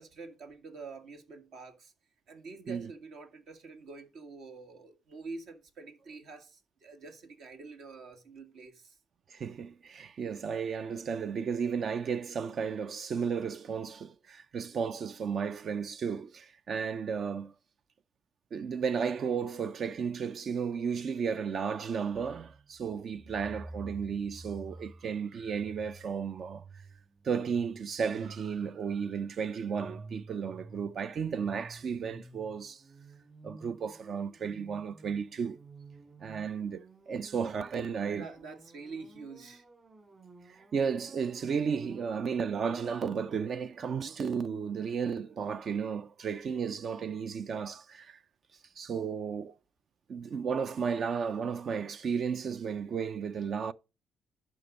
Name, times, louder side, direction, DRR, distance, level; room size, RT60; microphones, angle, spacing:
voice 1, 0.0-1.9 2.3-9.0 38.2-39.6, right 4 dB, 75° right, 1.9 m, -46 dB
voice 2, 9.3-17.5 18.5-26.6 27.2-32.8 33.4-35.6 36.2-38.3 40.5-48.2 48.8-49.6 50.1-53.7, right 6 dB, 55° right, 0.4 m, -33 dB
sound 1, 22.1-42.1, right 2 dB, 35° right, 2.1 m, -51 dB
11.0 x 5.3 x 5.2 m
cardioid pair, 90°, 0 cm